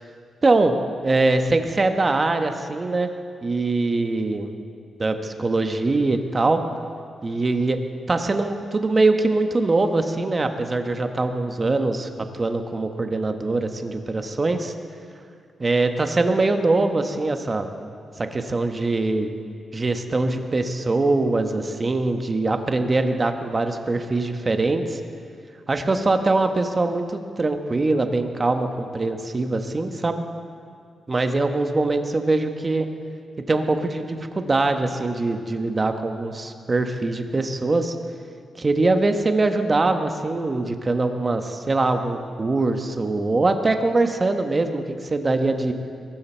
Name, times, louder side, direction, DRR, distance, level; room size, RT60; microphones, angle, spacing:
voice 1, 0.4-0.8 1.0-3.1 3.4-4.5 5.0-6.6 7.2-7.8 8.1-14.7 15.6-17.7 18.2-19.3 19.7-25.0 25.7-30.2 31.1-32.9 33.5-37.9 38.6-45.7, right 2 dB, 30° right, 6 dB, 1.1 m, -22 dB
22.5 x 13.5 x 4.5 m, 2.3 s
wide cardioid pair, 125°, 0 cm